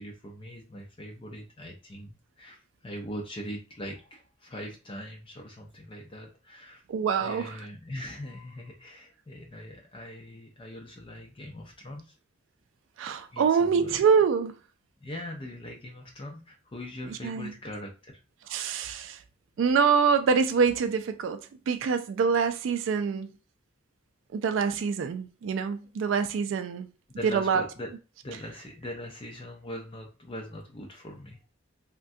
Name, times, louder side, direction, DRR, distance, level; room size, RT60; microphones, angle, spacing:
voice 1, 0.0-2.6 2.8-6.8 7.2-12.1 13.3-14.0 15.0-18.2 18.5-18.7 27.2-27.9 28.2-31.4, left 1 dB, 30° left, 0.5 m, -41 dB
voice 2, 6.9-7.7 13.0-14.6 17.1-17.5 18.5-19.2 19.6-23.3 24.3-26.9 27.2-27.6, right 6 dB, 80° right, 0.3 m, -25 dB
3.5 x 2.2 x 2.6 m
head